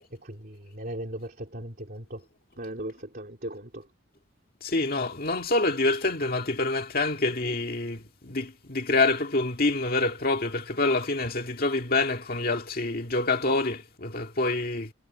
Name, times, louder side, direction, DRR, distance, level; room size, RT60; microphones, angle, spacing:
voice 1, 0.2-2.2 2.6-3.9, right 1 dB, 45° right, 3.3 m, -38 dB
voice 2, 4.6-14.9, left 2 dB, 45° left, 1.9 m, -26 dB
head